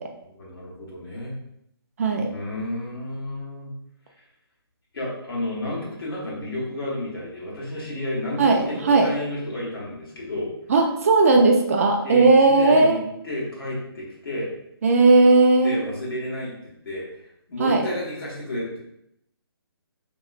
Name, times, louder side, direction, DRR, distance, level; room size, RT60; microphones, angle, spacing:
voice 1, 0.3-1.3 2.3-3.7 4.9-10.5 12.0-14.5 15.6-17.2 17.5-18.8, left 1 dB, 65° left, -4 dB, 1.4 m, -31 dB
voice 2, 2.0-2.3 8.4-9.1 10.7-13.0 14.8-15.8 17.6-17.9, right 3 dB, 35° right, 2 dB, 0.3 m, -17 dB
3.1 x 2.9 x 2.4 m, 0.77 s
figure-of-eight pair, 150°, 13 cm